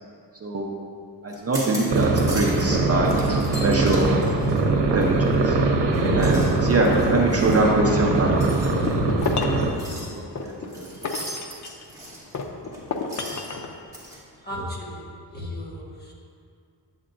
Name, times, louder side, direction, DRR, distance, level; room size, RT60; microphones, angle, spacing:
voice 1, 1.2-4.5 4.9-5.6 6.1-8.3 8.6-8.8 9.5-9.6 10.0-10.9, right 2 dB, 35° right, -1 dB, 0.7 m, -24 dB
sound 1, 1.3-2.8 3.0-5.5 5.9-14.2, equal, 10° right, 1.7 m, -40 dB
sound 2, 1.9-9.7, right 3 dB, 80° right, 0.9 m, -22 dB
sound 3, 8.6-9.7 10.4-11.9 12.3-13.7, left 4 dB, 45° left, 0.6 m, -30 dB
voice 2, 14.4-16.1, left 1 dB, 25° left, -4 dB, 1.3 m, -35 dB
8.7 x 7.8 x 2.6 m, 2.3 s
wide cardioid pair, 125°, 41 cm